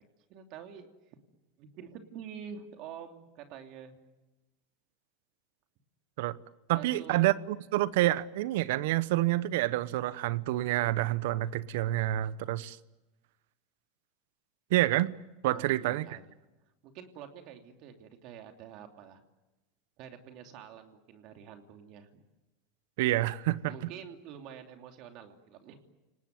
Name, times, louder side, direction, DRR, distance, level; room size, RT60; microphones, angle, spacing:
voice 1, 0.3-0.9 1.6-4.0 6.7-7.2 15.5-16.2 16.8-19.2 20.0-22.2 23.6-25.8, right 8 dB, 55° right, 2.9 m, -47 dB
voice 2, 6.7-12.8 14.7-15.1 15.4-16.1 23.0-23.7, right 16 dB, 70° right, 0.9 m, -28 dB
29.5 x 19.0 x 9.4 m
hypercardioid pair, 110°, 0 cm